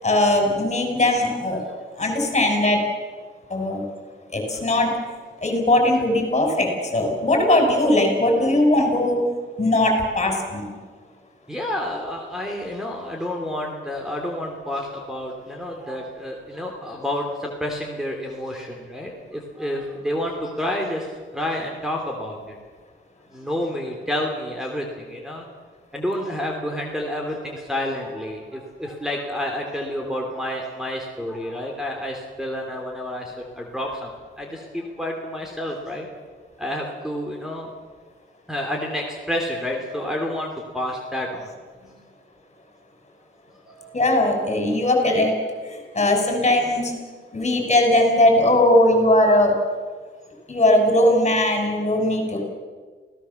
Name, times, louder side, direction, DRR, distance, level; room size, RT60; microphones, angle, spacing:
voice 1, 0.0-1.6 1.9-2.8 3.5-3.8 4.3-5.0 5.4-9.2 9.6-10.8 43.9-45.3 45.6-46.9 47.3-49.5 50.5-52.4, left 1 dB, 30° left, 3 dB, 6.1 m, -19 dB
voice 2, 11.5-22.6 23.3-25.4 25.9-36.1 36.6-37.7 38.5-41.5 41.8-41.9 43.6-43.9, left 1 dB, ahead, 1 dB, 3.1 m, -29 dB
27.5 x 17.5 x 7.2 m, 1.5 s
wide cardioid pair, 125°, 21 cm